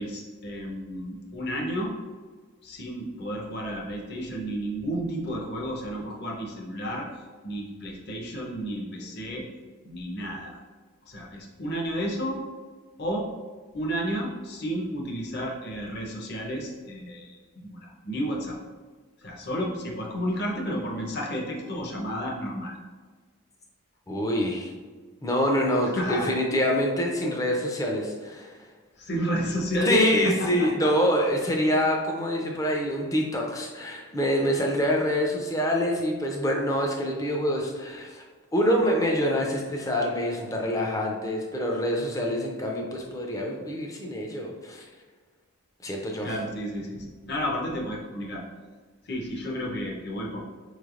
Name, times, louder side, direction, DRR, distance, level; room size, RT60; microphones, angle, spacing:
voice 1, 0.0-2.0 2.6-7.1 7.4-9.5 9.8-10.6 11.0-12.4 13.0-13.3 13.7-18.6 19.2-22.8 25.9-26.4 29.0-30.9 32.8-32.9 46.2-48.4 49.0-50.4, equal, 50° left, -1 dB, 0.7 m, -31 dB
voice 2, 24.1-24.7 25.2-28.5 29.8-38.2 38.5-44.9 45.8-46.3, equal, 15° left, 0 dB, 0.4 m, -26 dB
4.7 x 3.2 x 2.4 m, 1.5 s
head